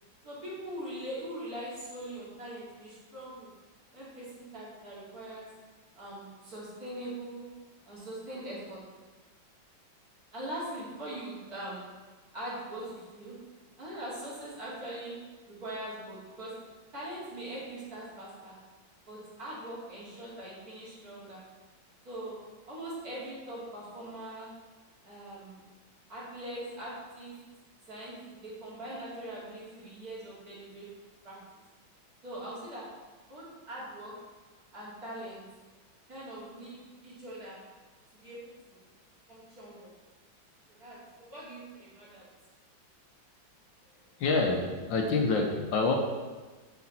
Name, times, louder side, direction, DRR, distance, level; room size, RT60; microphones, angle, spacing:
voice 1, 0.2-3.5 3.9-5.5 6.0-7.4 7.8-8.8 10.3-11.8 12.3-13.3 13.8-15.2 15.5-16.5 16.9-18.6 19.1-21.4 22.0-22.3 22.7-24.5 25.0-25.6 26.1-27.3 27.9-30.9 31.2-31.4 32.2-32.9 33.3-34.1 34.7-35.4 36.1-37.6 38.1-38.8 39.3-39.9 40.7-42.2, right 1 dB, 45° right, -8 dB, 3.4 m, -42 dB
voice 2, 44.2-46.0, left 3 dB, 70° left, 2 dB, 1.7 m, -27 dB
8.3 x 7.3 x 4.3 m, 1.3 s
omnidirectional pair, 2.2 m